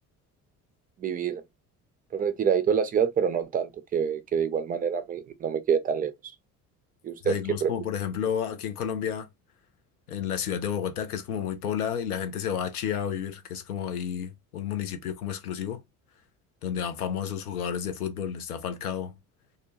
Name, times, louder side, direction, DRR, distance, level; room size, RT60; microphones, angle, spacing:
voice 1, 1.0-1.4 2.1-6.3 7.0-7.7, right 7 dB, 20° right, 0.4 m, -27 dB
voice 2, 7.2-9.3 10.1-15.8 16.6-19.2, left 8 dB, 85° left, 0.5 m, -31 dB
2.4 x 2.1 x 2.7 m
figure-of-eight pair, 55°, 44 cm